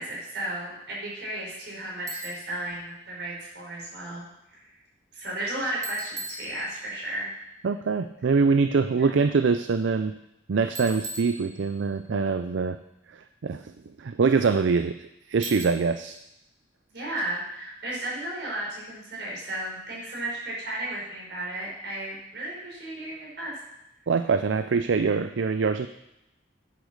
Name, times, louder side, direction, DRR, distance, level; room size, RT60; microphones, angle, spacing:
voice 1, 0.0-4.2 4.5-4.7 5.1-7.3 8.9-9.2 16.9-23.6, right 1 dB, 65° right, -4 dB, 5.5 m, -34 dB
Bicycle, 2.1-2.6 5.8-7.1 10.8-12.0 15.4-16.1, right 2 dB, 20° right, 1.1 m, -39 dB
voice 2, 7.6-10.1 10.5-12.8 13.1-13.7 14.0-16.2 24.1-25.9, right 4 dB, 85° right, 11 dB, 0.5 m, -24 dB
10.0 x 8.3 x 6.4 m, 0.88 s
head